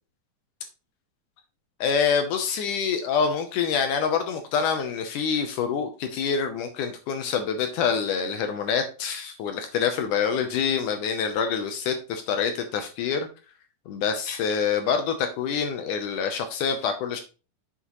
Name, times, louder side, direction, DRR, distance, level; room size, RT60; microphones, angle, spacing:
voice 1, 1.8-13.3 13.9-17.2, left 6 dB, 75° left, 7 dB, 2.1 m, -26 dB
7.4 x 6.9 x 3.0 m, 0.33 s
omnidirectional pair, 4.0 m